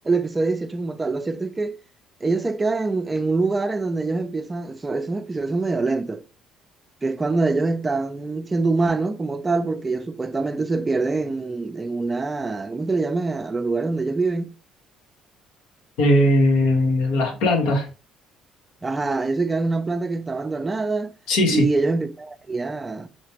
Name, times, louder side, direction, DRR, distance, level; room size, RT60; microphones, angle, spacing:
voice 1, 0.0-1.8 2.2-6.2 7.0-14.5 18.8-21.1 21.5-23.1, right 3 dB, 25° right, 0.4 m, -24 dB
voice 2, 16.0-17.9 21.3-21.6, left 1 dB, 75° left, 1.0 m, -19 dB
3.2 x 2.9 x 2.9 m
hypercardioid pair, 60°, 0 cm